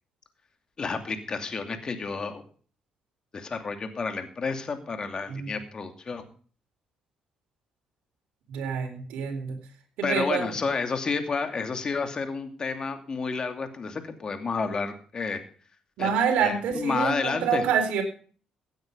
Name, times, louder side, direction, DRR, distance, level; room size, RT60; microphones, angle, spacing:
voice 1, 0.8-2.4 3.3-6.2 10.0-15.4 16.0-16.1 16.4-17.6, left 4 dB, 40° left, 7 dB, 2.6 m, -30 dB
voice 2, 8.5-9.6 10.0-10.6 16.0-18.0, right 7 dB, 85° right, 3 dB, 4.2 m, -27 dB
16.5 x 9.5 x 5.4 m, 0.43 s
cardioid pair, 90°, 2 cm